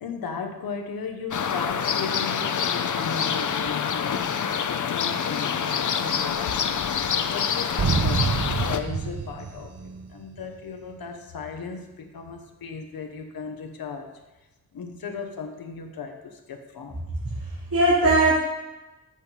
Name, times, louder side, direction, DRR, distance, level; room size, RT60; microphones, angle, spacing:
voice 1, 0.0-4.4 4.9-6.6 7.3-14.1 14.7-17.2, left 5 dB, 85° left, 5 dB, 1.0 m, -36 dB
sound 1, 1.3-8.8, left 7 dB, 60° left, 0.6 m, -26 dB
sound 2, 7.8-10.5, right 5 dB, 45° right, 0.8 m, -27 dB
voice 2, 17.2-18.4, right 2 dB, 80° right, -10 dB, 2.9 m, -20 dB
8.5 x 4.0 x 5.8 m, 1.0 s
cardioid pair, 50°, 34 cm